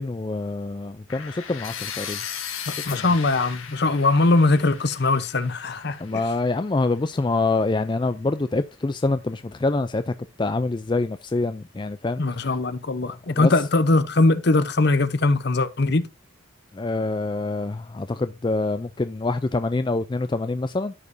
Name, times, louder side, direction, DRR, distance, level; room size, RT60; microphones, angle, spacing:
voice 1, 0.0-2.2 2.9-3.1 6.0-12.2 13.3-13.5 16.7-20.9, left 3 dB, 25° left, 0.4 m, -26 dB
sound 1, 1.1-7.0, left 8 dB, 85° left, 1.8 m, -37 dB
voice 2, 2.7-6.0 12.2-16.1, left 2 dB, 55° left, 0.8 m, -21 dB
14.0 x 5.2 x 2.6 m
head